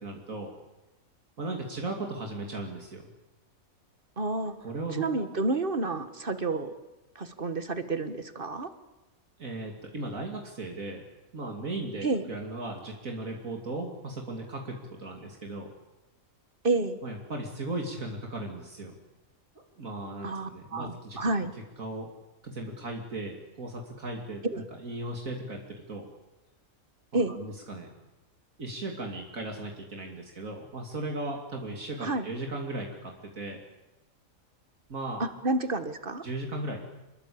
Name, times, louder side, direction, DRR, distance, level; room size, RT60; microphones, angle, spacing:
voice 1, 0.0-0.5 1.4-3.1 4.6-5.2 9.4-11.0 11.3-15.7 17.0-19.0 19.8-21.2 21.8-22.1 22.4-24.4 24.8-26.1 27.3-27.9 28.6-33.6 34.9-35.2 36.2-36.8, right 2 dB, 75° right, 1 dB, 3.3 m, -37 dB
voice 2, 4.2-4.5 5.0-6.7 7.2-8.7 12.0-12.2 16.6-17.0 20.2-21.5 24.4-24.6 27.1-27.3 32.0-32.3 35.2-36.2, right 2 dB, 40° right, 10 dB, 1.7 m, -29 dB
27.0 x 22.0 x 8.7 m, 1.0 s
omnidirectional pair, 1.5 m